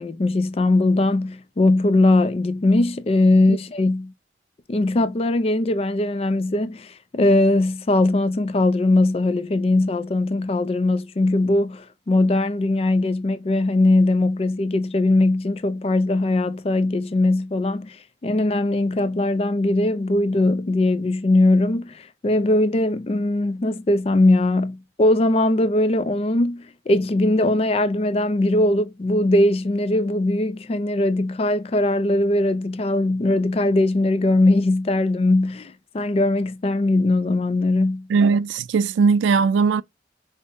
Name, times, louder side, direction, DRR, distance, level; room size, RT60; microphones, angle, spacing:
voice 1, 0.0-4.1 4.7-38.1, left 2 dB, 30° left, 0.3 m, -20 dB
voice 2, 38.1-39.8, right 5 dB, 85° right, 0.3 m, -18 dB
5.2 x 2.1 x 2.5 m
head